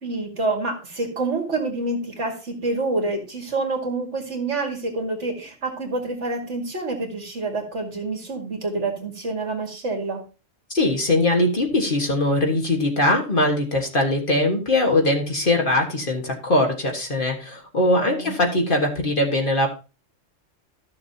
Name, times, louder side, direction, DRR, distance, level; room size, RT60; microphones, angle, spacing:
voice 1, 0.0-10.2 18.0-18.4, right 2 dB, 65° right, 2 dB, 2.5 m, -27 dB
voice 2, 10.7-19.7, left 1 dB, 45° left, 1 dB, 1.7 m, -21 dB
14.0 x 6.8 x 2.8 m, 0.33 s
omnidirectional pair, 1.3 m